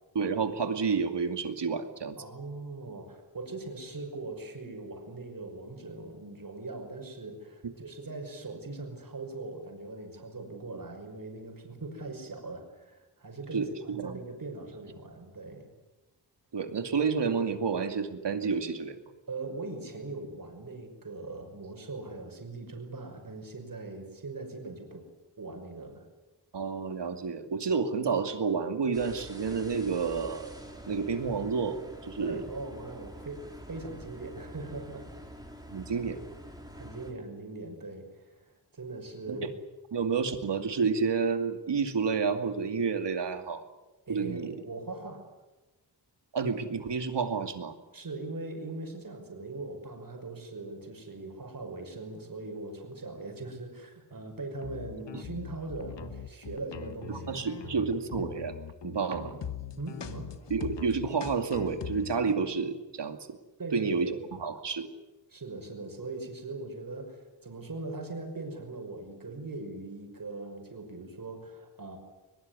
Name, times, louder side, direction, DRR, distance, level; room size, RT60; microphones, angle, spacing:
voice 1, 0.1-2.2 7.6-7.7 13.5-14.2 16.5-19.0 26.5-30.5 30.8-32.4 35.7-36.2 39.3-39.5 39.9-43.6 44.1-44.6 46.3-47.7 55.1-55.2 57.1-58.5 58.8-59.3 60.5-63.2 63.7-64.9, right 5 dB, 75° right, 7 dB, 2.5 m, -30 dB
voice 2, 2.2-15.7 19.3-25.0 25.4-26.1 32.2-35.1 36.8-39.5 44.1-45.2 47.9-57.3 57.5-57.9 59.2-59.4 59.8-60.3 63.6-64.2 65.3-72.0, right 3 dB, 50° right, 4 dB, 5.8 m, -40 dB
sound 1, 28.9-37.1, equal, 10° right, 4.5 m, -46 dB
sound 2, 54.6-62.3, left 8 dB, 85° left, 1.4 m, -41 dB
22.0 x 21.5 x 9.7 m, 1.1 s
wide cardioid pair, 85°, 42 cm